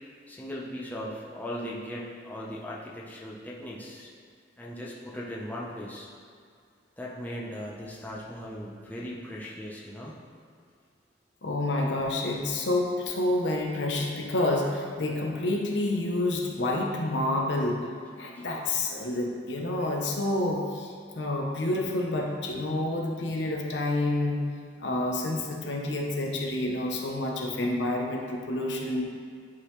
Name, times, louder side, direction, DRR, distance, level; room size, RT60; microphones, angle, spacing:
voice 1, 0.3-4.1 4.6-6.1 7.0-10.1 18.4-18.5, equal, 10° left, -5 dB, 0.7 m, -38 dB
voice 2, 11.4-17.8 18.2-24.4 24.8-29.0, left 2 dB, 65° left, 0 dB, 0.8 m, -28 dB
9.9 x 3.9 x 3.1 m, 2.2 s
head